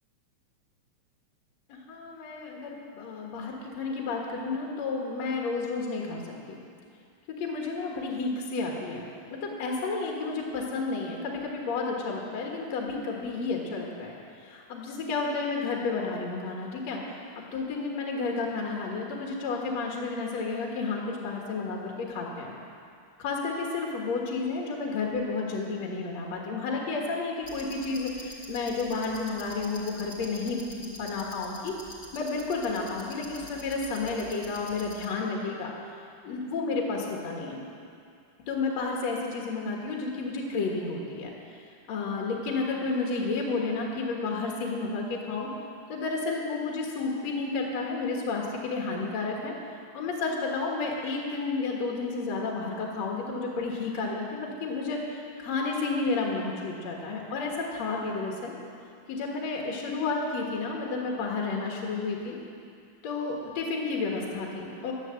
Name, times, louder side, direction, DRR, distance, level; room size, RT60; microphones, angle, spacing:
voice 1, 1.7-6.2 6.5-6.6 7.3-9.0 9.3-17.0 17.4-22.5 23.2-31.7 32.1-35.7 36.2-37.6 38.5-41.3 41.9-45.5 45.9-49.5 49.9-58.5 59.1-62.4 63.0-64.9, left 3 dB, 60° left, -1 dB, 2.7 m, -31 dB
sound 1, 27.4-35.1, left 1 dB, 15° left, 2.7 m, -46 dB
12.0 x 10.5 x 7.9 m, 2.3 s
omnidirectional pair, 3.6 m